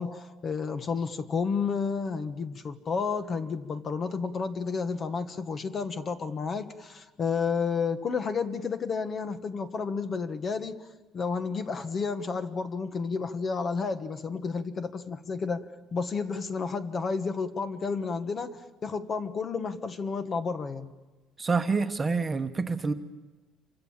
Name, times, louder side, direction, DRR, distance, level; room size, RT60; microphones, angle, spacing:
voice 1, 0.0-10.8 11.1-15.6 15.9-20.9, left 5 dB, 35° left, 9 dB, 1.5 m, -31 dB
voice 2, 21.4-22.9, right 4 dB, 20° right, 7 dB, 1.3 m, -27 dB
28.0 x 25.0 x 7.4 m, 1.2 s
cardioid pair, 140°, 0 cm